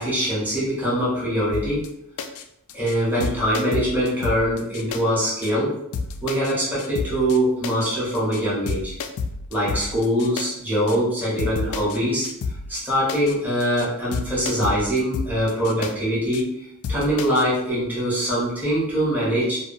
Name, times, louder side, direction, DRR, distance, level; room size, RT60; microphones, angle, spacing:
voice 1, 0.0-1.8 2.7-5.7 6.2-8.9 9.5-12.3 12.7-16.5 16.9-19.6, equal, 10° right, -9 dB, 1.0 m, -23 dB
sound 1, 1.5-1.9 2.2-2.4 2.7-2.9 3.2-5.0 5.4-5.5 5.9-6.5 6.8-7.4 7.6-7.9 8.1-8.4 8.7-10.5 10.9-11.0 11.4-12.0 12.2-12.8 13.1-13.3 13.6-13.9 14.1-15.9 16.3-16.4 16.8-17.4, left 4 dB, 85° left, 0.3 m, -30 dB
2.8 x 2.3 x 2.6 m, 0.80 s
head